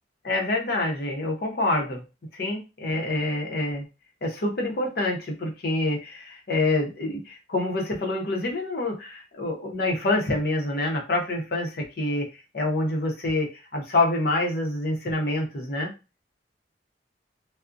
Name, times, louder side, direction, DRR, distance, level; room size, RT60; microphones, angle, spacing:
voice 1, 0.2-2.0 2.3-3.9 4.2-12.3 12.5-15.9, left 2 dB, 60° left, 1 dB, 0.7 m, -26 dB
2.4 x 2.1 x 2.5 m, 0.28 s
head